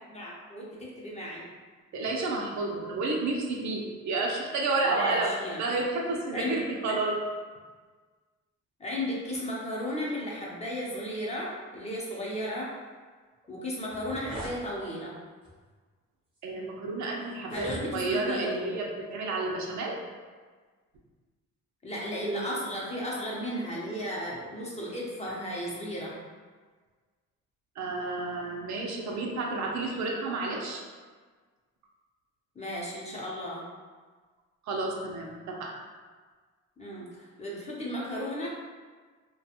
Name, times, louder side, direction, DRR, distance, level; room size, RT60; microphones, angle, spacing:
voice 1, 0.0-1.5 4.8-5.6 6.3-6.6 8.8-12.7 13.5-15.1 17.5-18.7 21.8-26.1 32.5-33.6 36.8-38.5, equal, 20° left, -5 dB, 0.7 m, -35 dB
voice 2, 1.9-7.2 16.4-20.0 27.8-30.8 34.6-35.7, right 3 dB, 70° right, -1 dB, 0.6 m, -31 dB
sound 1, 13.4-13.5 13.8-14.6 15.4-15.7 16.4-16.5 17.3-18.2, right 1 dB, 20° right, 0.7 m, -41 dB
2.4 x 2.2 x 2.7 m, 1.5 s
cardioid pair, 90°, 30 cm